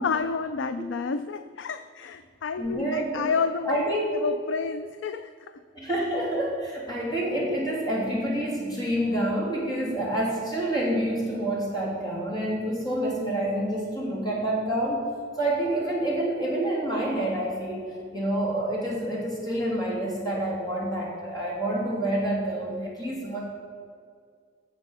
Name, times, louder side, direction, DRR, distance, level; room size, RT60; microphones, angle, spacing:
voice 1, 0.0-3.8 4.1-5.5, left 5 dB, 85° left, 11 dB, 0.4 m, -30 dB
voice 2, 2.6-3.3 3.6-4.1 5.7-15.0 15.4-23.4, right 1 dB, 20° left, -4 dB, 3.0 m, -28 dB
16.5 x 7.1 x 5.5 m, 2.1 s
head